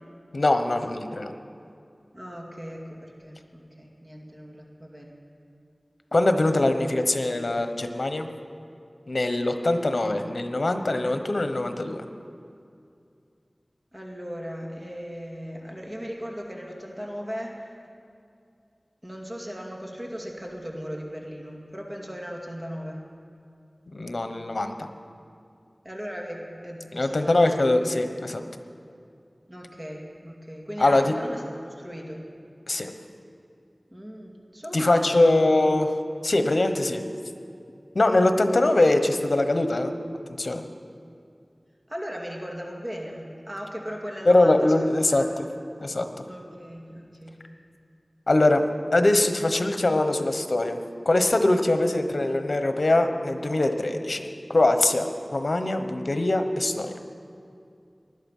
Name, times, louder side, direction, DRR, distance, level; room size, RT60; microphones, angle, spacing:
voice 1, 0.3-1.3 6.1-8.3 9.1-12.0 23.9-24.9 26.9-28.4 30.8-31.1 32.7-32.9 34.7-35.9 36.2-37.0 37.9-39.9 40.4-40.6 44.3-45.5 45.8-46.1 48.3-48.6 48.9-50.8 51.0-56.9, left 2 dB, 70° left, 7 dB, 1.1 m, -22 dB
voice 2, 2.1-5.1 13.9-17.7 19.0-23.0 25.8-27.6 29.5-32.3 33.9-35.4 41.9-45.3 46.3-47.4, equal, 25° right, 0 dB, 2.3 m, -37 dB
19.5 x 12.0 x 5.6 m, 2.5 s
wide cardioid pair, 50°, 0 cm